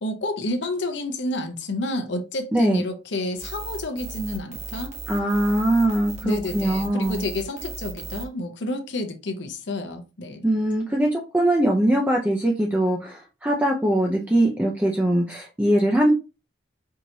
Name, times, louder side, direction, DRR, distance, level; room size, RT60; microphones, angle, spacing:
voice 1, 0.0-4.9 6.2-10.4, left 1 dB, 65° left, 0.7 m, -30 dB
voice 2, 2.5-2.8 5.1-7.2 10.4-16.1, right 1 dB, 10° right, 0.4 m, -22 dB
sound 1, 3.4-8.3, right 3 dB, 35° right, 1.0 m, -36 dB
4.6 x 2.9 x 2.6 m
head